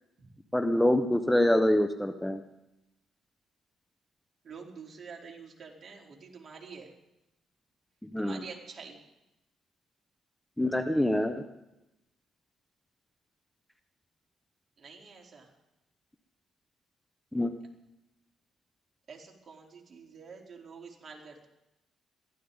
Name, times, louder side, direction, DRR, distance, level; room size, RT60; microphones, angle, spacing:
voice 1, 0.5-2.4 8.1-8.4 10.6-11.4 17.3-17.5, left 1 dB, 5° left, 7 dB, 1.0 m, -25 dB
voice 2, 4.4-6.9 8.2-9.0 14.8-15.5 19.1-21.5, right 5 dB, 45° right, -1 dB, 3.9 m, -47 dB
22.5 x 15.5 x 4.0 m, 0.92 s
cardioid pair, 90°, 0 cm